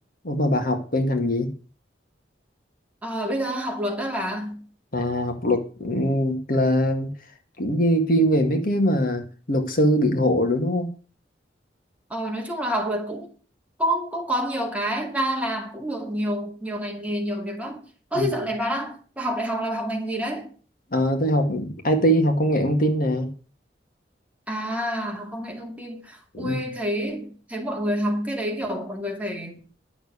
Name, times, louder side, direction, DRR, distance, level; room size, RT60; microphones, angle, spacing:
voice 1, 0.2-1.5 4.9-7.1 7.6-10.9 18.1-18.3 20.9-23.3 26.3-26.6, equal, 50° left, 2.1 m, -22 dB
voice 2, 3.0-4.6 12.1-13.3 13.8-17.8 18.1-20.5 24.5-29.6, equal, 10° right, 2.5 m, -28 dB
11.5 x 6.8 x 8.4 m
head